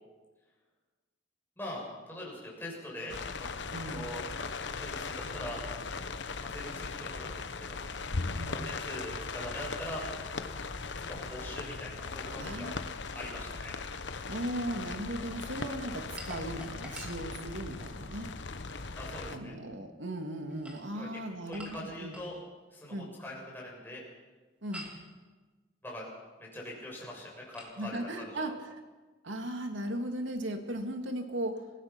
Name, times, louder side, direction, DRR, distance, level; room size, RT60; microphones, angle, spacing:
voice 1, 1.6-3.5 3.8-4.2 4.8-5.6 6.5-7.8 8.5-10.0 10.4-10.5 10.9-12.7 13.1-13.8 19.0-19.6 20.9-21.1 21.5-22.4 22.7-24.0 25.8-26.1 26.4-28.6, left 1 dB, 10° left, -4 dB, 6.9 m, -42 dB
sound 1, 3.1-19.4, left 4 dB, 70° left, 1.0 m, -39 dB
voice 2, 3.7-4.1 8.3-8.6 12.4-12.8 13.1-13.2 14.3-18.3 19.3-22.2 22.9-23.1 24.6-24.9 27.8-28.8 29.2-31.6, right 1 dB, 85° right, 5 dB, 2.4 m, -37 dB
sound 2, 16.2-18.0 20.4-22.4 24.7-25.1 27.5-27.8, equal, 5° right, 2.8 m, -48 dB
27.0 x 16.5 x 6.0 m, 1.3 s
head